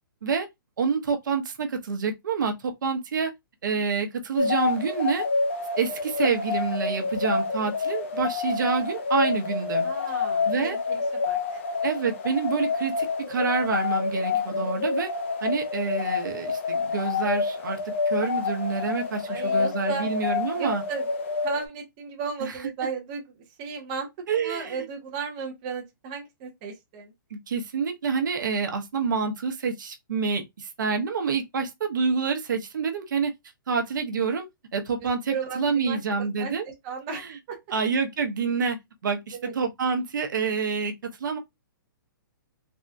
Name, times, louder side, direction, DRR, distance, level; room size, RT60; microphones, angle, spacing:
voice 1, 0.8-3.3 3.6-5.2 5.8-9.9 10.4-10.8 11.8-15.1 15.4-17.8 18.1-20.8 22.4-22.5 24.3-24.8 27.3-33.3 33.7-34.5 34.7-36.6 37.1-37.4 37.7-38.8 39.0-40.9 41.2-41.4, right 5 dB, 60° right, 0.9 m, -27 dB
sound 1, 4.4-21.7, left 4 dB, 35° left, 0.4 m, -28 dB
voice 2, 9.8-11.6 14.3-14.7 19.3-20.1 20.6-21.1 21.4-23.2 23.6-27.1 35.0-36.0 36.4-37.6 39.3-39.5, right 5 dB, 20° right, 0.7 m, -35 dB
3.5 x 2.2 x 2.6 m
hypercardioid pair, 175°, 12 cm